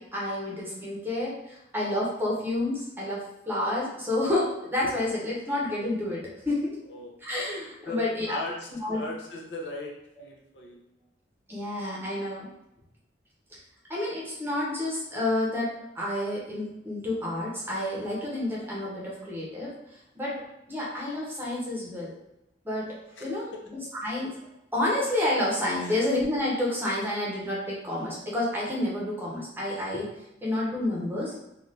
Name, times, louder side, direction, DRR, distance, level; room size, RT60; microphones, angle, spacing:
voice 1, 0.0-6.8 7.2-8.4 8.7-9.1 11.5-12.5 13.9-19.7 20.1-22.1 22.6-24.3 24.7-30.1 30.4-31.3, left 1 dB, 10° right, -5 dB, 0.8 m, -29 dB
voice 2, 7.9-10.8 23.2-23.6 25.8-26.0, left 1 dB, 75° left, 0 dB, 0.6 m, -38 dB
2.6 x 2.4 x 3.2 m, 0.88 s
head